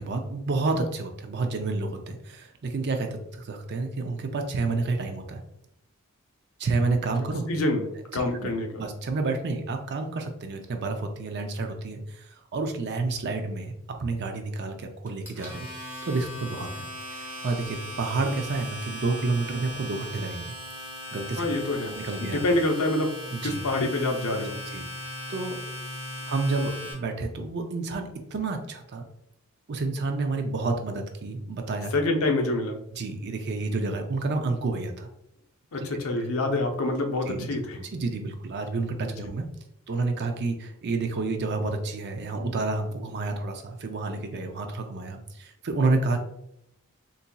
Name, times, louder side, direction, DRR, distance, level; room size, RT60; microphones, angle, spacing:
voice 1, 0.0-5.4 6.6-7.5 8.1-8.5 8.8-15.7 16.0-20.5 21.1-21.5 21.8-22.4 23.3-23.6 24.7-25.6 26.3-29.1 29.7-31.9 32.9-35.1 37.3-37.5 37.8-39.4 39.9-46.2, right 3 dB, 50° right, 5 dB, 0.5 m, -30 dB
voice 2, 7.5-8.8 21.4-23.1 23.4-24.6 31.9-32.8 35.7-37.8 39.0-39.1, left 2 dB, 70° left, 3 dB, 0.6 m, -26 dB
Domestic sounds home sounds, 15.1-26.9, left 1 dB, 10° right, 1.5 m, -38 dB
3.9 x 2.6 x 2.2 m, 0.77 s
head